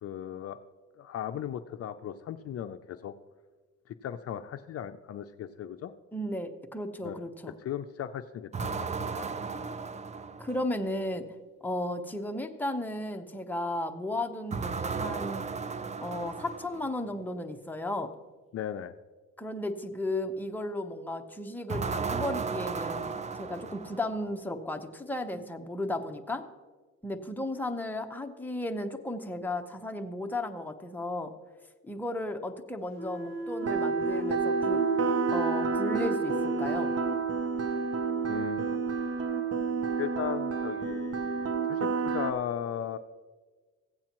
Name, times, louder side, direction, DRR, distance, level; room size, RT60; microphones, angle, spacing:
voice 1, 0.0-0.6 1.0-3.1 3.9-5.9 7.0-7.2 7.6-9.3 18.5-18.9 38.3-38.7 40.0-43.0, left 10 dB, 50° left, 10 dB, 0.5 m, -37 dB
voice 2, 6.1-7.5 10.4-11.3 11.6-15.5 16.0-18.1 19.4-23.1 23.3-26.4 27.0-31.3 31.8-34.8 35.3-36.9, left 1 dB, 5° left, 4 dB, 0.8 m, -34 dB
sound 1, 8.5-10.9 14.5-17.0 21.7-24.3, right 5 dB, 25° right, 0.4 m, -35 dB
sound 2, 32.9-37.2, right 2 dB, 85° right, 1.7 m, -36 dB
sound 3, 33.6-42.3, right 5 dB, 55° right, 1.0 m, -29 dB
16.0 x 8.5 x 3.0 m, 1.4 s
cardioid pair, 90°, 30 cm